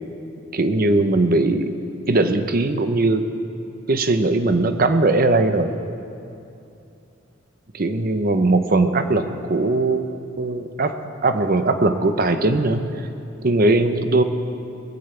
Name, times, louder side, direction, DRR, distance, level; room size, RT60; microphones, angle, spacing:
voice 1, 0.5-1.8 2.1-3.2 3.9-5.7 7.7-10.0 10.4-11.0 11.2-13.1 13.4-14.2, right 2 dB, 45° right, 8 dB, 0.8 m, -19 dB
20.5 x 15.0 x 3.3 m, 2.7 s
head